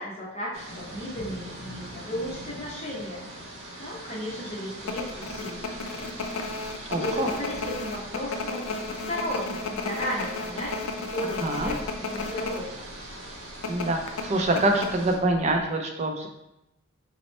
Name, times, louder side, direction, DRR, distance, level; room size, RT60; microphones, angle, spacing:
voice 1, 0.0-3.3 3.8-6.0 6.9-12.8, equal, 30° left, -4 dB, 0.7 m, -35 dB
sound 1, 0.5-15.2, right 1 dB, 80° right, 0.8 m, -42 dB
sound 2, 4.8-12.6 12.9-13.0 13.6-15.3 15.6-15.7, left 3 dB, 85° left, 0.4 m, -33 dB
voice 2, 6.9-7.3 11.4-11.7 13.7-16.3, right 2 dB, 35° right, 3 dB, 0.4 m, -25 dB
2.9 x 2.0 x 4.1 m, 0.87 s
head